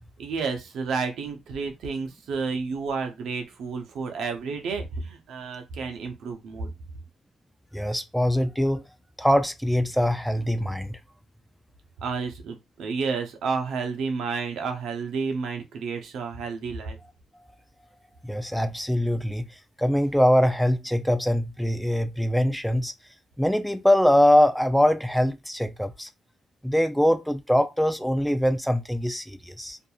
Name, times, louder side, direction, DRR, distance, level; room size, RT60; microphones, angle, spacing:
voice 1, 0.2-6.7 12.0-17.0, right 5 dB, 75° right, 0.7 m, -31 dB
voice 2, 7.7-8.8 9.2-11.0 18.2-19.4 19.8-22.9 23.4-26.1 26.6-29.8, equal, ahead, 0.4 m, -23 dB
2.7 x 2.6 x 2.4 m
cardioid pair, 90°, 0 cm